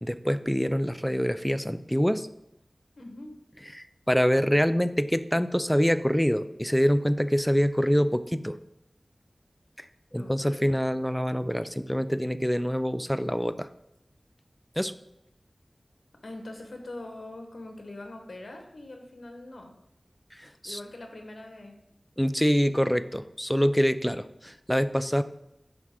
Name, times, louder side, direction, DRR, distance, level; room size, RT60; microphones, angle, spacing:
voice 1, 0.0-2.3 3.7-8.6 9.8-9.9 10.1-13.7 14.8-14.9 20.3-20.8 22.2-25.2, equal, 5° left, 12 dB, 0.3 m, -25 dB
voice 2, 3.0-3.3 10.2-10.7 16.2-19.7 20.6-21.8, left 2 dB, 85° left, 3 dB, 1.2 m, -43 dB
10.5 x 4.2 x 3.7 m, 0.85 s
wide cardioid pair, 65°, 0 cm